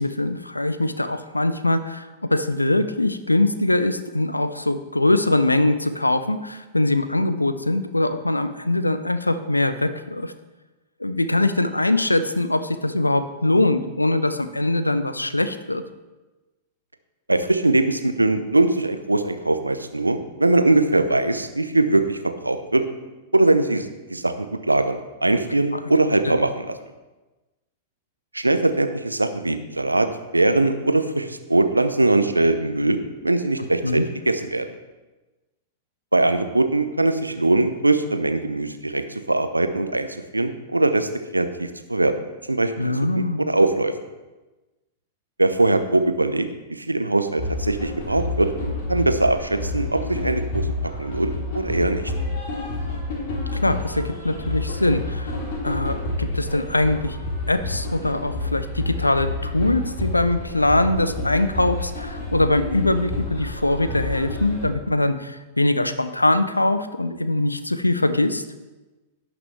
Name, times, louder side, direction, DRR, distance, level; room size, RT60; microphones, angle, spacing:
voice 1, 0.0-10.3 11.0-15.8 25.7-25.8 26.2-26.3 33.8-34.0 42.8-43.4 53.5-55.4 55.6-57.2 57.5-68.4, left 2 dB, 85° left, 11 dB, 0.6 m, -22 dB
voice 2, 17.3-22.9 23.3-26.7 28.3-30.1 30.3-34.7 36.1-40.1 40.3-42.1 42.5-43.9 45.4-48.5 48.9-52.1, right 2 dB, 85° right, 9 dB, 0.8 m, -21 dB
sound 1, 47.4-64.7, left 2 dB, 45° left, 3.5 m, -29 dB
17.0 x 6.1 x 3.3 m, 1.1 s
figure-of-eight pair, 100°, 0 cm